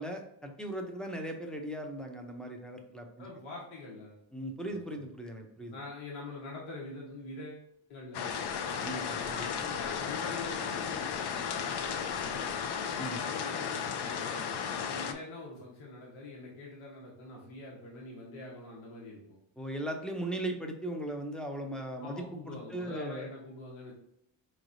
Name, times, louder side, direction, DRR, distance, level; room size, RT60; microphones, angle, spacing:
voice 1, 0.0-3.2 4.3-5.8 8.8-9.5 13.0-13.2 19.6-23.3, right 1 dB, ahead, 1 dB, 0.5 m, -38 dB
voice 2, 3.2-4.2 4.6-4.8 5.7-8.3 9.5-11.0 11.5-12.5 12.8-19.4 22.0-23.9, left 2 dB, 85° left, -3 dB, 1.3 m, -45 dB
sound 1, 8.1-15.1, left 7 dB, 55° left, 0.6 m, -34 dB
4.7 x 3.2 x 2.6 m, 0.76 s
cardioid pair, 135°, 47 cm